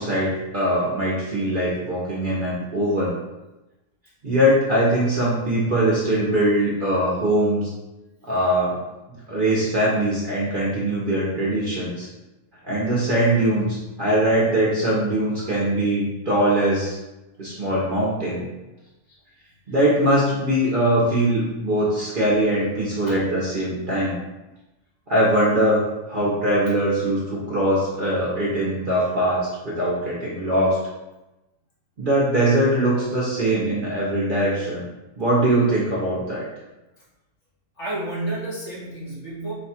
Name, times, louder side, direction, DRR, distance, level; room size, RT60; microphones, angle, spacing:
voice 1, 0.0-3.2 4.2-7.7 8.2-8.8 9.1-12.1 12.7-17.0 17.4-18.4 19.7-24.2 25.1-25.8 26.1-30.8 32.0-34.8 35.2-36.4, right 1 dB, 45° right, -6 dB, 0.8 m, -21 dB
voice 2, 37.8-39.5, right 2 dB, 50° left, -7 dB, 1.6 m, -31 dB
4.1 x 2.3 x 4.2 m, 1.0 s
omnidirectional pair, 1.6 m